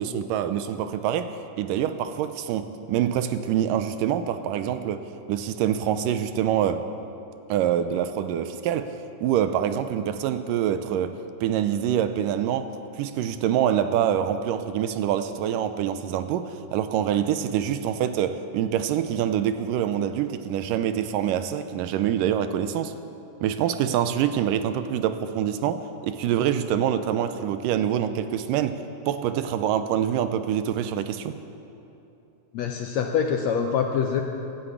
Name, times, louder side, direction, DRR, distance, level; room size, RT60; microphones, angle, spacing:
voice 1, 0.0-6.9 7.5-22.9 23.4-31.4, right 9 dB, 85° right, 10 dB, 2.2 m, -25 dB
voice 2, 32.5-34.2, left 7 dB, 75° left, 3 dB, 1.7 m, -25 dB
16.0 x 10.5 x 8.4 m, 2.9 s
omnidirectional pair, 3.9 m